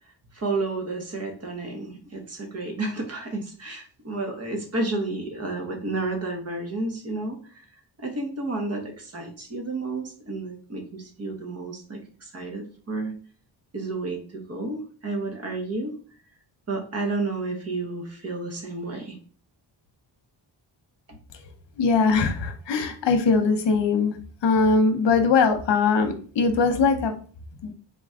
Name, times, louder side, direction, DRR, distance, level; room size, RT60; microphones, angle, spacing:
voice 1, 0.3-7.6 8.0-13.1 13.7-15.9 16.7-19.2 21.1-21.2, right 2 dB, 35° right, 3 dB, 1.1 m, -31 dB
voice 2, 21.8-27.1 27.6-27.7, left 4 dB, 70° left, 6 dB, 0.9 m, -21 dB
4.0 x 3.2 x 3.6 m, 0.43 s
wide cardioid pair, 120°, 44 cm